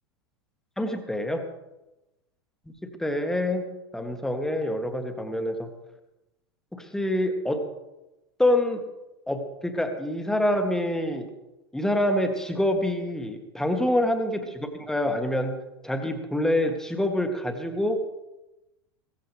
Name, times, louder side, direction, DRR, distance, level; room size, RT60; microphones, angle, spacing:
voice 1, 0.8-1.4 2.8-3.7 3.9-5.7 6.7-7.6 8.4-8.8 9.3-11.3 11.7-15.6 15.8-18.2, left 1 dB, 5° left, 5 dB, 1.5 m, -26 dB
16.0 x 14.5 x 3.4 m, 0.98 s
figure-of-eight pair, 85°, 14 cm